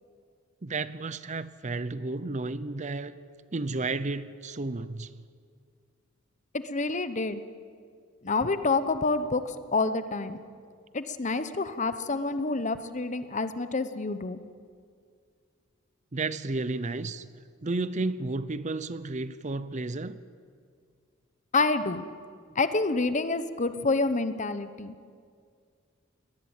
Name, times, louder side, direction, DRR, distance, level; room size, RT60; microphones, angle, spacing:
voice 1, 0.6-3.2 3.5-5.2 16.1-17.3 17.6-20.2, right 3 dB, 35° right, 15 dB, 0.7 m, -32 dB
voice 2, 6.5-7.4 8.2-10.4 10.9-14.4 21.5-22.1 22.5-24.9, left 3 dB, 35° left, 11 dB, 1.0 m, -28 dB
22.0 x 19.5 x 9.0 m, 2.2 s
head